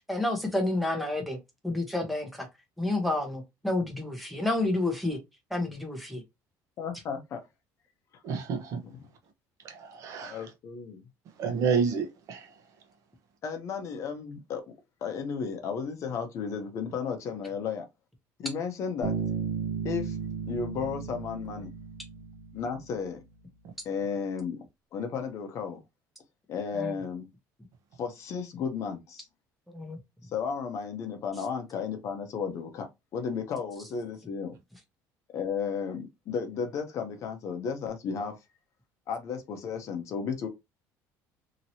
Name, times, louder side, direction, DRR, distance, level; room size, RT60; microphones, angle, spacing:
voice 1, 0.0-1.4 1.6-2.5 2.8-5.2 5.5-6.2 26.8-27.0 29.7-30.0, left 2 dB, ahead, 0.9 m, -29 dB
voice 2, 6.8-7.4 8.8-9.0 10.2-11.0 13.4-14.6 15.0-17.9 18.4-19.1 19.8-20.2 20.5-21.7 22.5-23.2 23.8-24.6 24.9-25.8 26.5-27.3 28.0-29.3 30.3-32.9 33.1-34.5 35.3-38.3 39.1-40.5, left 6 dB, 45° left, 0.8 m, -33 dB
voice 3, 8.2-8.8 9.7-10.4 11.4-12.4, right 6 dB, 50° right, 0.8 m, -29 dB
Bass guitar, 19.0-22.8, right 6 dB, 75° right, 0.9 m, -34 dB
2.9 x 2.8 x 2.8 m
cardioid pair, 145°, 7 cm